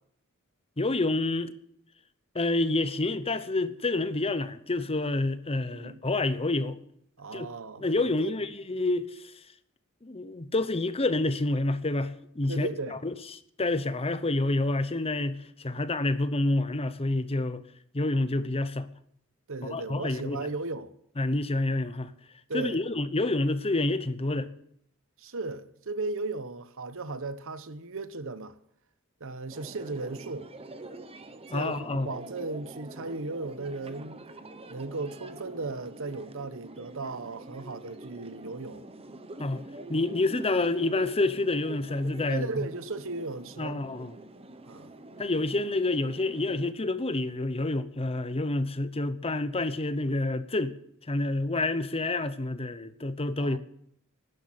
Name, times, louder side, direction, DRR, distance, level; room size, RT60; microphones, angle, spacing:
voice 1, 0.8-1.5 2.3-6.8 7.3-7.5 7.8-9.3 10.0-13.2 13.6-17.6 17.9-18.9 19.6-20.5 21.2-22.1 22.5-24.5 31.5-32.1 39.4-39.6 39.9-42.7 43.6-44.1 45.2-50.7 51.1-53.6, left 2 dB, 25° left, 0.8 m, -28 dB
voice 2, 5.7-6.0 7.2-8.3 12.5-13.0 19.5-20.9 22.5-22.8 25.2-28.6 29.2-30.5 31.5-34.2 34.7-38.8 42.3-43.8 44.7-44.9 53.4-53.6, right 3 dB, 65° right, 1.0 m, -36 dB
sound 1, 29.5-46.7, right 2 dB, 25° right, 1.0 m, -46 dB
12.0 x 10.5 x 8.8 m
head